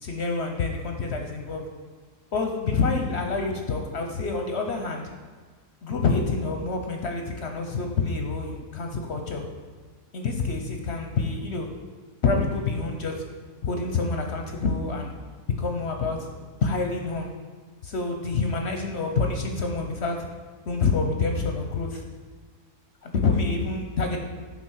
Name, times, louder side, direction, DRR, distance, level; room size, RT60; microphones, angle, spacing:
voice 1, 0.0-1.6 2.3-5.1 5.8-9.5 10.1-11.7 12.2-13.2 13.6-15.1 15.6-16.2 16.6-17.3 17.8-20.3 20.7-22.0 23.0-24.2, left 4 dB, 55° left, 3 dB, 0.8 m, -27 dB
9.8 x 3.6 x 6.3 m, 1.6 s
omnidirectional pair, 1.8 m